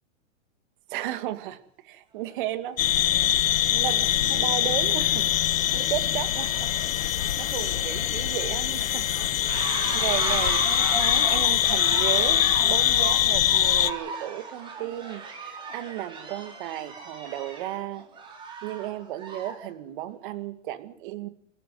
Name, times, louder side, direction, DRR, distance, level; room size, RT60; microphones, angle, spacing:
voice 1, 0.9-1.6 1.8-3.2 3.7-5.3 5.7-6.7 7.0-9.1 9.5-18.0 18.6-21.3, right 13 dB, 40° right, 12 dB, 2.2 m, -34 dB
sound 1, 2.3-2.4 3.1-3.4 3.7-19.7, right 4 dB, 10° right, 4.9 m, -37 dB
sound 2, 2.8-13.9, left 12 dB, 80° left, 1.4 m, -23 dB
27.5 x 13.5 x 7.8 m, 0.67 s
supercardioid pair, 175°, 39 cm